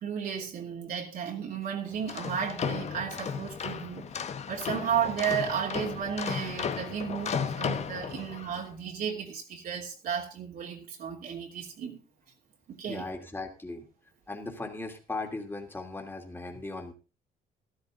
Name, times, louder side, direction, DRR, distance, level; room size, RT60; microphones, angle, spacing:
voice 1, 0.0-4.1 4.5-12.0 12.7-13.1, right 8 dB, 60° right, 3.0 m, -33 dB
sound 1, 1.9-8.6, left 6 dB, 40° left, 1.2 m, -34 dB
voice 2, 12.9-13.9 14.3-16.9, left 2 dB, 10° left, 2.7 m, -38 dB
13.0 x 13.0 x 3.9 m
cardioid pair, 110°, 17 cm